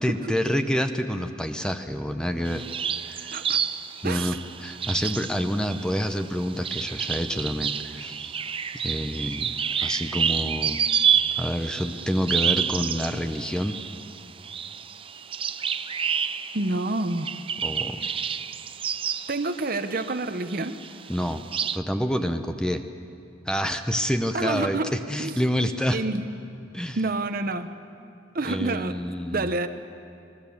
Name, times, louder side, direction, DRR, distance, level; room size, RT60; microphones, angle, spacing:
voice 1, 0.0-2.7 3.0-3.4 4.0-8.3 8.8-9.5 9.8-10.8 11.4-13.8 17.6-18.2 21.1-21.4 21.7-22.8 23.5-26.0 26.7-27.0 28.4-29.5, equal, 5° left, 7 dB, 0.8 m, -28 dB
sound 1, 2.5-20.2 20.5-21.8, right 8 dB, 30° right, 0.6 m, -29 dB
voice 2, 4.0-4.4 16.5-17.3 19.3-20.8 24.3-24.9 25.2-25.3 25.9-26.3 27.0-27.7 28.3-29.0 29.3-29.7, right 2 dB, 50° right, 9 dB, 0.9 m, -28 dB
27.5 x 19.0 x 7.1 m, 2.5 s
head